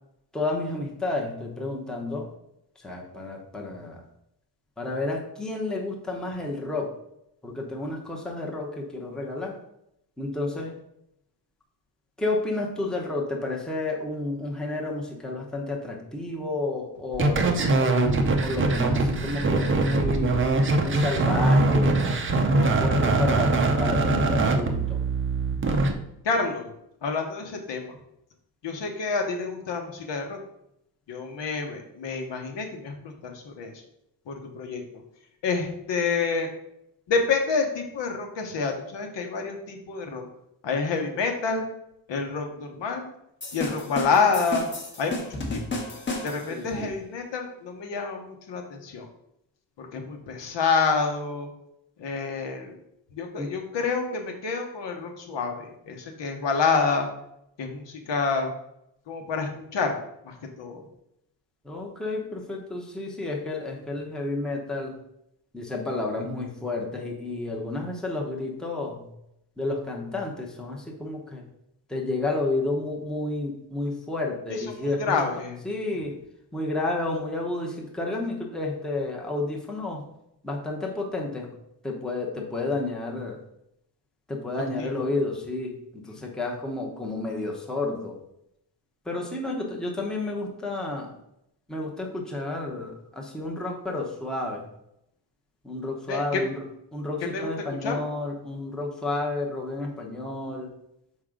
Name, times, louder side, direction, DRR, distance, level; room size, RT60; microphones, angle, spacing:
voice 1, 0.3-2.3 2.8-4.0 4.8-6.9 7.4-9.6 10.2-10.7 12.2-20.4 20.8-22.1 22.5-25.0 46.5-46.9 53.4-53.5 61.6-65.0 65.5-69.1 69.6-71.4 71.9-75.2 75.6-76.2 76.5-80.0 80.4-81.5 81.8-83.4 84.3-88.2 89.0-91.1 91.7-94.7 95.6-96.7 96.9-100.7, left 2 dB, ahead, -1 dB, 0.8 m, -31 dB
sound 1, 17.1-25.9, right 2 dB, 30° right, 0.5 m, -22 dB
voice 2, 26.2-26.7 27.0-28.0 28.6-30.4 31.1-33.7 34.3-35.0 35.4-36.5 37.1-40.3 40.6-41.6 42.1-43.1 43.5-44.7 45.0-45.8 46.2-49.1 49.8-51.5 52.0-52.8 53.1-57.1 57.6-58.5 59.1-60.0 60.2-60.8 74.5-75.6 84.6-84.9 96.1-96.4 97.3-97.5 97.8-98.0, left 4 dB, 75° left, 3 dB, 1.1 m, -28 dB
sound 2, 43.4-46.6, left 2 dB, 25° left, 1.0 m, -33 dB
6.4 x 4.8 x 3.7 m, 0.79 s
wide cardioid pair, 170°, 44 cm